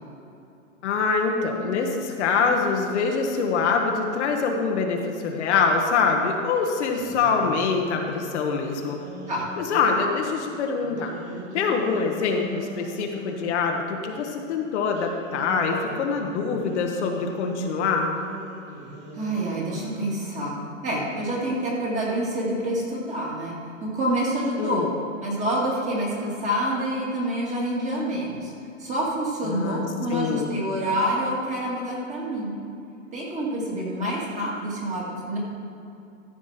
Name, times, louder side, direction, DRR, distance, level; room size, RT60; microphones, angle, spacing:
voice 1, 0.8-9.0 9.6-11.1 11.5-18.1 24.6-24.9 29.5-29.8 30.1-30.5, left 5 dB, 55° left, 2 dB, 1.3 m, -24 dB
sound 1, 6.7-10.0 10.8-13.8 14.9-20.2, right 1 dB, 45° right, 2.8 m, -40 dB
voice 2, 19.1-23.6 23.8-24.9 25.2-28.5 28.8-32.5 33.1-35.4, right 1 dB, 20° right, -4 dB, 2.2 m, -27 dB
14.0 x 5.1 x 5.9 m, 2.7 s
hypercardioid pair, 145°, 40 cm